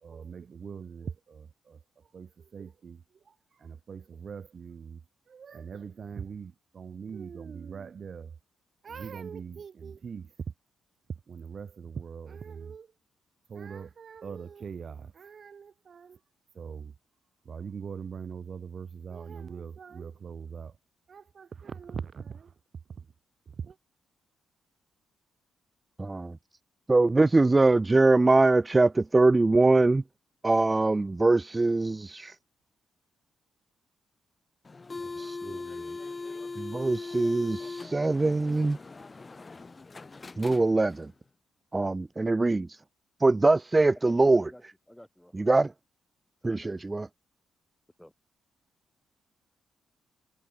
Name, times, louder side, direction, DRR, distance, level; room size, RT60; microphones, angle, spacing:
voice 1, 0.0-1.8 2.1-5.0 5.3-8.3 8.8-10.3 11.3-12.9 13.5-16.2 16.6-16.9 17.5-20.7 21.1-22.5 23.6-23.8, right 6 dB, 55° right, 1.8 m, -41 dB
voice 2, 26.0-26.4 26.9-30.0 30.4-32.4 35.2-35.7 36.6-38.8 40.4-41.1 41.7-42.8 43.2-44.4 45.3-45.7 46.4-47.1, right 2 dB, 25° right, 0.4 m, -23 dB
sound 1, 34.6-41.1, left 3 dB, 30° left, 2.0 m, -40 dB
voice 3, 44.1-44.6 44.9-45.6 46.4-46.7 48.0-48.1, left 1 dB, 5° left, 5.5 m, -51 dB
cardioid pair, 70°, 0 cm